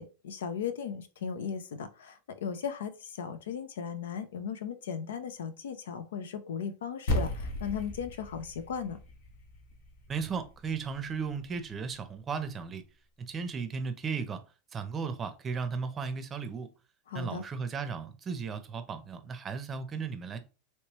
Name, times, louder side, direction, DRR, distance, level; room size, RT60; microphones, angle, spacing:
voice 1, 0.0-9.0 17.1-17.4, left 7 dB, 90° left, 0.5 m, -37 dB
sound 1, 7.1-11.6, left 1 dB, 70° left, 1.1 m, -36 dB
voice 2, 10.1-12.8 13.2-14.4 14.7-16.7 17.1-20.4, right 5 dB, 25° right, 0.6 m, -35 dB
3.1 x 3.1 x 3.0 m
supercardioid pair, 130°, 0 cm